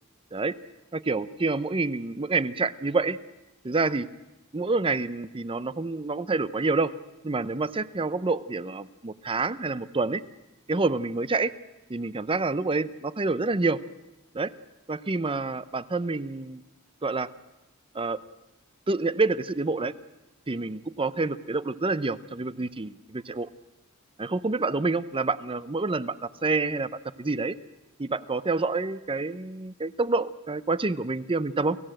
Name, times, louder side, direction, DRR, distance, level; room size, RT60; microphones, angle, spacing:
voice 1, 0.9-3.2 3.6-4.1 4.5-6.9 7.2-10.2 10.7-11.5 11.9-13.8 14.3-14.5 14.9-16.6 17.0-17.3 17.9-18.2 18.9-19.9 20.5-23.5 24.2-26.9 27.2-27.5 28.0-31.8, right 3 dB, 25° right, 15 dB, 0.7 m, -27 dB
28.5 x 16.5 x 7.8 m, 1.0 s
head